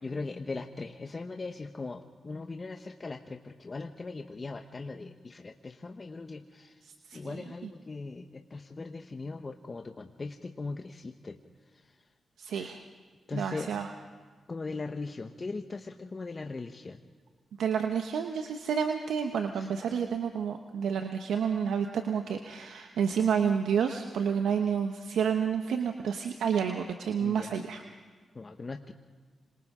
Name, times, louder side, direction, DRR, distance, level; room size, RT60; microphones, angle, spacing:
voice 1, 0.0-6.7 7.1-11.4 11.7-12.0 12.5-12.7 13.3-13.7 14.5-17.0 19.5-19.7 27.2-27.6 28.3-28.9, left 3 dB, 40° left, 5 dB, 1.1 m, -39 dB
voice 2, 7.1-7.4 12.4-12.8 13.3-13.9 17.6-27.8, right 7 dB, 80° right, 5 dB, 1.0 m, -29 dB
26.5 x 26.0 x 3.7 m, 1.5 s
supercardioid pair, 45°, 0 cm